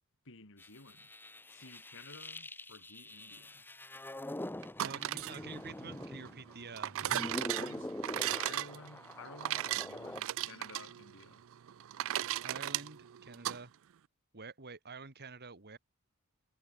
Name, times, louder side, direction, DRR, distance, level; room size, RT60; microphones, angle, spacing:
voice 1, 0.2-1.1 1.5-3.6 7.0-11.4, left 3 dB, 65° left, 5.1 m, -53 dB
sound 1, 0.6-6.6 6.9-10.2, left 1 dB, 10° left, 0.8 m, -44 dB
sound 2, 4.6-13.6, right 13 dB, 65° right, 0.4 m, -37 dB
voice 2, 4.8-6.9 8.1-8.4 12.4-13.7 14.3-15.8, right 4 dB, 50° right, 2.3 m, -48 dB
head